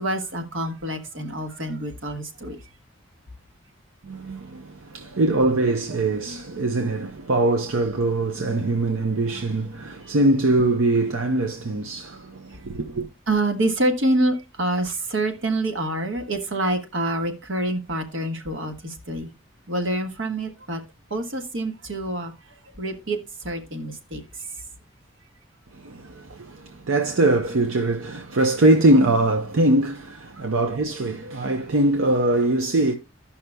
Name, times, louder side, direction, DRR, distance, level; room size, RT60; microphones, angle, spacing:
voice 1, 0.0-2.6 13.3-19.3 19.7-20.8 21.1-24.5 30.3-30.4, right 1 dB, 70° right, 1.4 m, -27 dB
voice 2, 4.0-13.1 25.7-32.9, right 2 dB, 85° right, 0.7 m, -22 dB
16.0 x 5.7 x 2.2 m
head